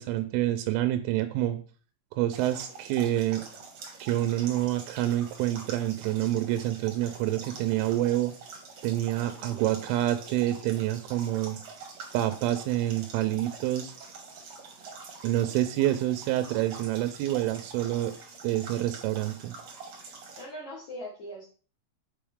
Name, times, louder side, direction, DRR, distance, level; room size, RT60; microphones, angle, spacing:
voice 1, 0.0-1.6 2.1-3.4 4.0-8.3 8.8-11.6 12.1-13.9 15.2-18.1 18.4-19.5, right 14 dB, 85° right, 8 dB, 3.1 m, -27 dB
sound 1, 2.3-20.4, right 4 dB, 60° right, 1.7 m, -45 dB
voice 2, 9.1-9.8 20.4-21.5, equal, 60° left, -5 dB, 1.9 m, -42 dB
7.8 x 5.0 x 3.6 m, 0.39 s
omnidirectional pair, 5.6 m